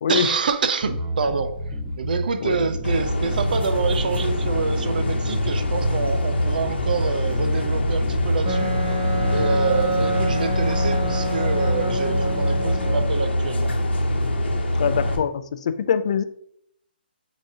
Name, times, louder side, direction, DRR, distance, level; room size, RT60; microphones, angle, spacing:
voice 1, 0.1-1.5 2.0-8.9 9.2-13.7, right 5 dB, 55° right, 0.5 m, -26 dB
Bass guitar, 0.8-10.4, equal, 5° right, 0.7 m, -31 dB
sound 1, 2.8-15.2, left 1 dB, 85° left, 0.9 m, -24 dB
Wind instrument woodwind instrument, 8.4-13.1, equal, 30° right, 0.9 m, -27 dB
voice 2, 14.8-16.2, left 7 dB, 40° left, 0.3 m, -23 dB
4.0 x 2.6 x 4.7 m
hypercardioid pair, 170°, 6 cm